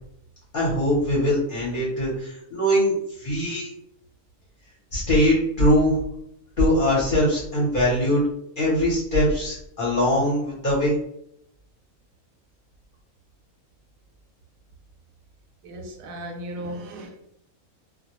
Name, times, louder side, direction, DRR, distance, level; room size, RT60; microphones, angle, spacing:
voice 1, 0.5-3.7 4.9-6.0 6.6-8.2 8.6-11.0, equal, 45° left, -7 dB, 0.8 m, -22 dB
voice 2, 15.6-17.2, right 1 dB, 85° right, 3 dB, 1.0 m, -36 dB
2.3 x 2.0 x 2.9 m, 0.74 s
omnidirectional pair, 1.4 m